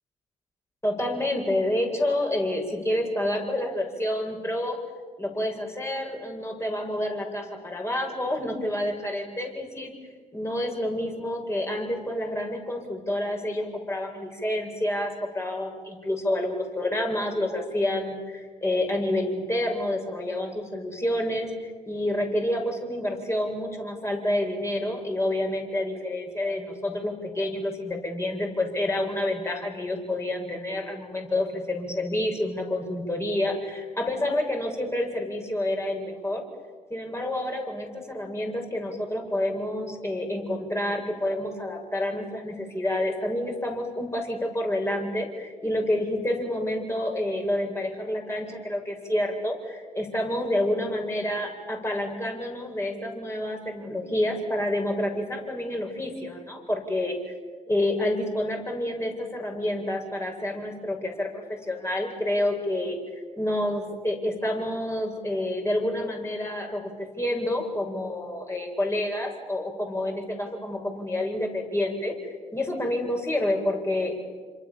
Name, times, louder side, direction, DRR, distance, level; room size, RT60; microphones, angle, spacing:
voice 1, 0.8-4.8 5.2-9.9 10.3-36.4 36.9-57.3 57.7-63.0 63.4-74.1, left 1 dB, 15° left, 2 dB, 7.7 m, -28 dB
29.0 x 26.5 x 7.4 m, 1.5 s
figure-of-eight pair, 40°, 19 cm